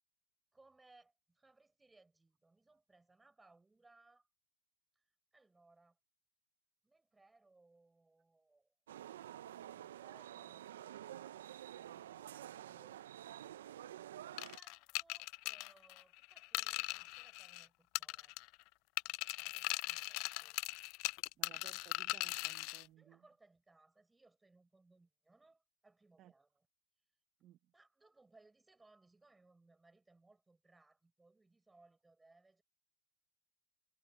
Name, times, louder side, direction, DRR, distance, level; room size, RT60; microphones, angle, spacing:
voice 1, 0.5-4.3 4.9-6.0 6.8-8.7 14.5-18.3 19.0-20.6 21.3-21.4 23.0-26.5 27.7-32.6, right 3 dB, 5° right, 6.0 m, -68 dB
sound 1, 8.9-14.6, right 12 dB, 80° right, 0.6 m, -50 dB
sound 2, 14.4-17.7 17.9-18.6 19.0-22.8, left 25 dB, 40° left, 0.3 m, -40 dB
voice 2, 21.4-23.3 26.2-26.3 27.4-27.7, right 14 dB, 30° right, 1.1 m, -61 dB
supercardioid pair, 150°, 0 cm